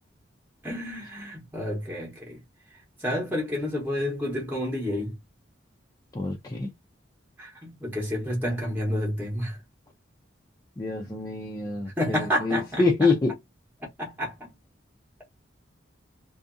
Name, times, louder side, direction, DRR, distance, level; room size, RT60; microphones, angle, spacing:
voice 1, 0.6-2.4 3.0-5.2 7.4-9.6 12.0-13.1 14.0-14.5, equal, 10° right, 0.9 m, -30 dB
voice 2, 6.1-6.7 10.8-13.3, left 3 dB, 20° left, 0.4 m, -26 dB
2.7 x 2.5 x 2.4 m
head